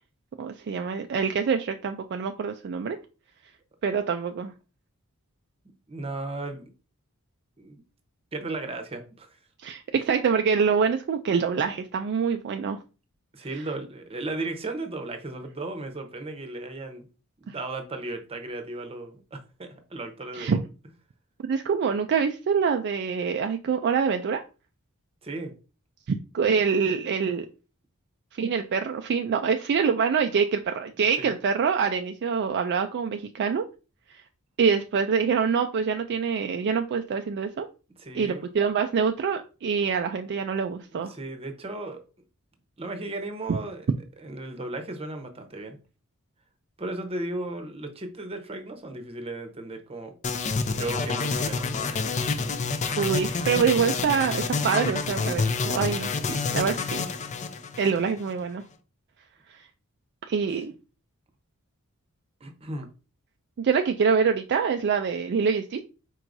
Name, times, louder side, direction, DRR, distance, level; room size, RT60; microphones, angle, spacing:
voice 1, 0.4-3.0 3.8-4.5 9.6-12.8 17.5-17.6 20.3-20.6 21.5-24.4 26.1-27.5 28.4-33.7 34.6-37.7 38.1-41.1 43.5-43.6 53.0-55.4 55.7-57.0 57.8-58.6 59.5-59.6 60.3-60.7 63.6-65.8, right 6 dB, 50° right, 6 dB, 0.3 m, -25 dB
voice 2, 5.9-6.6 7.6-7.8 8.3-9.3 13.3-17.1 17.4-20.6 25.2-25.5 31.2-31.3 38.0-38.5 41.1-42.0 42.8-43.9 44.2-45.8 46.8-50.1 50.7-52.1 62.4-62.9, right 2 dB, 25° right, 5 dB, 0.8 m, -35 dB
sound 1, 50.2-58.3, left 4 dB, 35° left, 0.5 m, -28 dB
4.6 x 4.5 x 2.6 m, 0.33 s
head